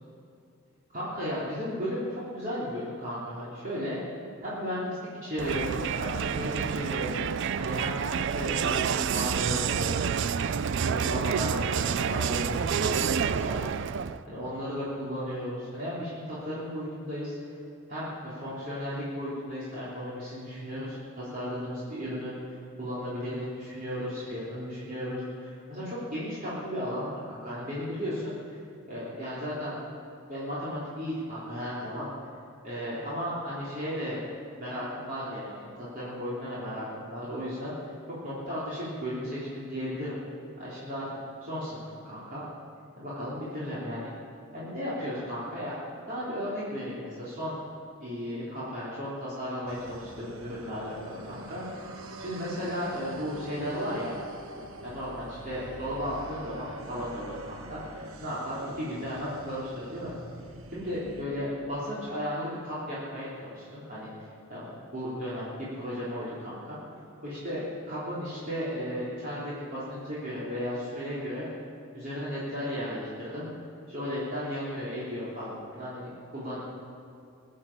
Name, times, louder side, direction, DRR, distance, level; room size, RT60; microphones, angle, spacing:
voice 1, 0.9-4.0 4.4-5.7 6.0-7.1 7.6-8.8 9.1-10.1 10.9-13.6 14.2-17.6 17.9-28.6 28.9-29.8 30.3-32.1 32.6-34.2 34.6-35.5 35.8-37.9 38.2-40.2 40.6-41.1 41.4-42.4 43.0-44.1 44.5-45.7 46.1-47.6 48.0-51.6 52.2-54.1 54.8-60.1 60.7-64.1 64.5-66.8 67.2-71.5 71.9-73.5 73.9-76.6, equal, 45° right, -10 dB, 3.5 m, -35 dB
Crowd, 5.4-14.2, right 7 dB, 60° right, 0.4 m, -28 dB
darksanc amb, 49.7-61.3, right 1 dB, 80° right, 1.1 m, -44 dB
22.5 x 7.6 x 7.4 m, 2.5 s
head